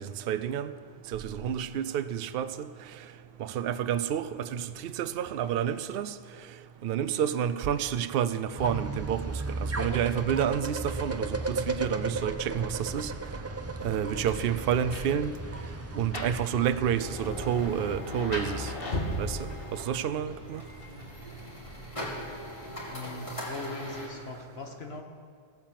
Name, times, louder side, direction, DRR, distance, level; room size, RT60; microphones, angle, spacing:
voice 1, 0.3-0.7 1.1-2.7 3.4-6.1 6.8-9.3 9.6-13.1 13.8-15.3 16.0-18.7 19.2-19.5 19.9-20.6, right 9 dB, 70° right, 0.8 m, -29 dB
sound 1, 8.6-18.0, right 2 dB, 20° right, 0.5 m, -35 dB
Rain, 13.7-22.8, left 1 dB, 65° left, 1.8 m, -39 dB
sound 2, 17.0-24.1, equal, 30° left, 2.9 m, -42 dB
voice 2, 22.9-25.0, left 3 dB, 80° left, 1.6 m, -40 dB
15.5 x 8.9 x 7.5 m
omnidirectional pair, 1.0 m